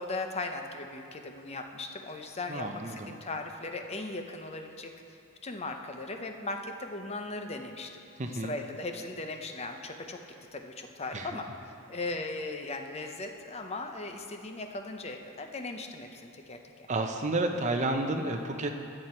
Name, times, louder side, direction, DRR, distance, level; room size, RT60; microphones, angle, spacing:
voice 1, 0.0-8.0 8.4-10.2 10.5-16.9, left 2 dB, 30° left, 5 dB, 0.6 m, -38 dB
voice 2, 2.5-3.1 8.2-8.5 11.1-11.3 16.9-18.7, right 2 dB, 35° right, 4 dB, 0.7 m, -31 dB
14.0 x 7.9 x 4.4 m, 2.6 s
head